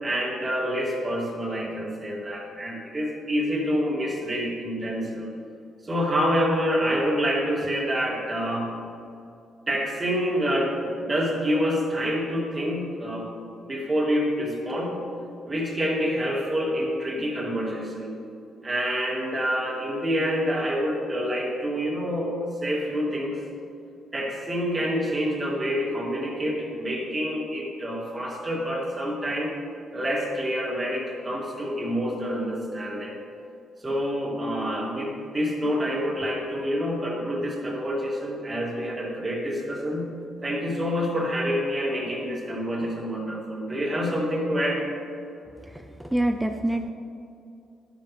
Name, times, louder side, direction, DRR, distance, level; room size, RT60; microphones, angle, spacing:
voice 1, 0.0-5.3 5.8-8.7 9.7-13.3 13.6-15.0 15.4-18.2 18.6-23.4 24.1-29.5 29.9-33.2 33.8-40.1 40.4-44.9, equal, 25° right, -3 dB, 2.8 m, -27 dB
voice 2, 45.6-46.9, right 1 dB, 10° right, 5 dB, 0.6 m, -26 dB
12.5 x 11.0 x 3.4 m, 2.6 s
cardioid pair, 90°, 0 cm